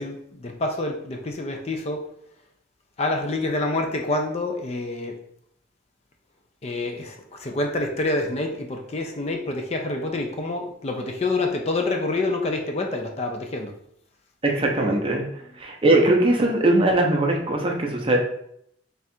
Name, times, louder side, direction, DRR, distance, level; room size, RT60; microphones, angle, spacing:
voice 1, 0.0-2.1 3.0-5.2 6.6-13.8, left 2 dB, 35° left, 3 dB, 0.4 m, -27 dB
voice 2, 14.4-15.2 15.6-18.2, right 2 dB, 30° right, 1 dB, 0.6 m, -20 dB
3.4 x 2.4 x 4.2 m, 0.72 s
head